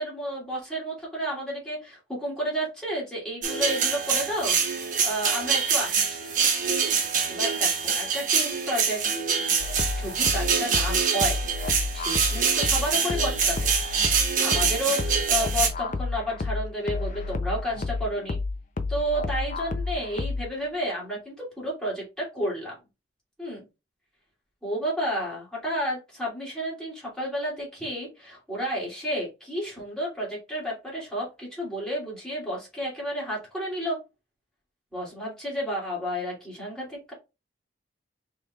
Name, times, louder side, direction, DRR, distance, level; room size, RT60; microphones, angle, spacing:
voice 1, 0.0-6.3 7.3-9.0 10.0-11.4 11.9-13.7 14.4-18.4 18.9-22.7 23.4-23.6 24.6-34.0 34.9-37.1, equal, 5° left, -5 dB, 2.5 m, -31 dB
sound 1, 3.4-15.7, right 6 dB, 45° right, 0.9 m, -25 dB
sound 2, 9.6-20.6, left 3 dB, 40° left, 0.5 m, -31 dB
5.3 x 3.3 x 2.3 m, 0.26 s
head